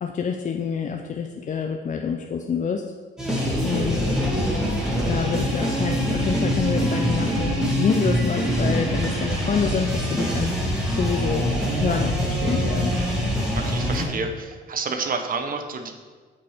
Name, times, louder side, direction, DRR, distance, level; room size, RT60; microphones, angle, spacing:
voice 1, 0.0-2.8 3.6-4.0 5.1-13.0, left 6 dB, 40° left, 4 dB, 0.5 m, -27 dB
sound 1, 3.2-14.1, equal, 5° right, 2.3 m, -24 dB
voice 2, 13.5-15.9, right 4 dB, 45° right, 6 dB, 0.9 m, -29 dB
8.3 x 5.3 x 3.6 m, 1.5 s
cardioid pair, 90°, 20 cm